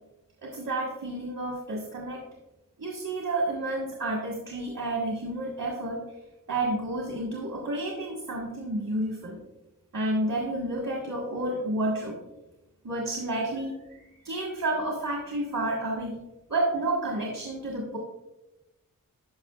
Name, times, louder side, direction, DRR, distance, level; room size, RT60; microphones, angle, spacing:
voice 1, 0.4-2.2 2.8-6.0 6.5-9.4 9.9-12.2 12.8-16.2 16.5-18.0, right 1 dB, 75° right, -2 dB, 1.5 m, -30 dB
11.0 x 5.6 x 2.4 m, 1.0 s
wide cardioid pair, 75°, 34 cm